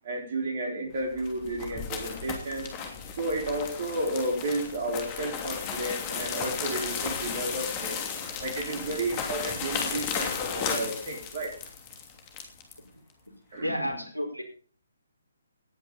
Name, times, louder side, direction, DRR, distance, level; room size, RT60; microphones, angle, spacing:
voice 1, 0.0-2.7 3.2-8.0 8.4-11.6 13.5-13.9, right 1 dB, 40° right, 1 dB, 4.5 m, -32 dB
sound 1, 1.0-12.8, left 6 dB, 25° left, 2.9 m, -34 dB
voice 2, 13.6-14.4, equal, 85° right, 4 dB, 4.8 m, -33 dB
18.5 x 10.0 x 4.1 m, 0.40 s
figure-of-eight pair, 140°, 0 cm